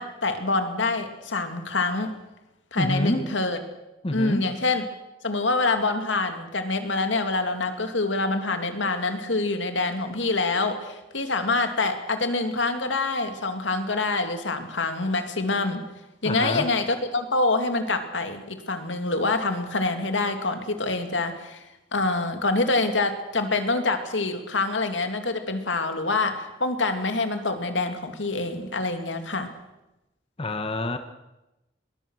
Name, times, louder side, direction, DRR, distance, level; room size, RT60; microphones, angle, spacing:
voice 1, 0.0-2.1 2.7-3.6 4.1-4.8 5.2-15.8 16.2-21.6 21.9-29.5, left 3 dB, 85° left, 7 dB, 2.4 m, -26 dB
voice 2, 2.8-3.2 4.0-4.5 16.2-16.7 30.4-31.0, left 1 dB, 30° left, 8 dB, 1.2 m, -26 dB
22.0 x 20.5 x 6.4 m, 0.97 s
head